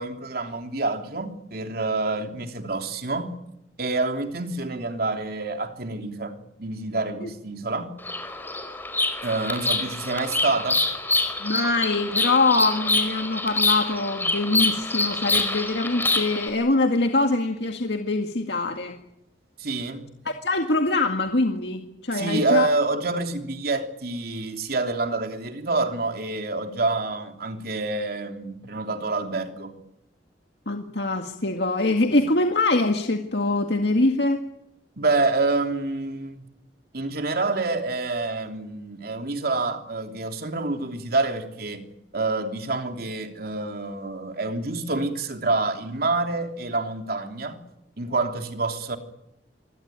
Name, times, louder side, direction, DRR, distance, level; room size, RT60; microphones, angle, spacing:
voice 1, 0.0-3.3 3.8-8.0 9.2-10.8 19.6-20.1 22.1-29.7 32.1-32.2 35.0-36.5 36.9-41.8 42.1-47.6 48.0-49.0, right 3 dB, 55° right, 3.2 m, -27 dB
Bird vocalization bird call bird song, 8.0-16.5, left 2 dB, 10° left, 4.7 m, -26 dB
voice 2, 11.4-19.0 20.4-22.7 30.7-34.4, left 2 dB, 65° left, 2.0 m, -23 dB
26.0 x 24.0 x 9.2 m
head